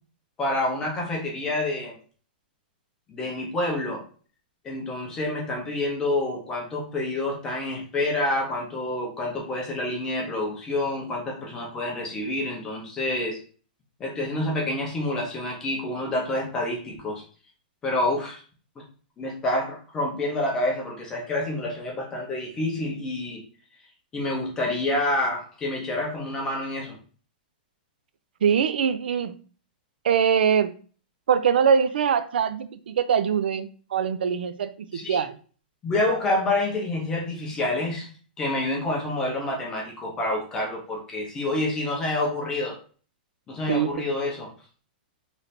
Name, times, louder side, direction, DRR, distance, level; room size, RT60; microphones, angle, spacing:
voice 1, 0.4-2.0 3.1-4.0 4.6-13.4 14.0-17.2 17.8-18.4 19.2-23.4 24.1-27.0 34.9-35.2 35.8-38.1 38.4-42.8 43.5-44.5, left 2 dB, 10° left, 0.7 m, -28 dB
voice 2, 28.4-29.3 30.0-30.7 31.3-35.4 43.7-43.9, right 7 dB, 85° right, 0.4 m, -23 dB
3.2 x 2.6 x 4.2 m
supercardioid pair, 175°, 5 cm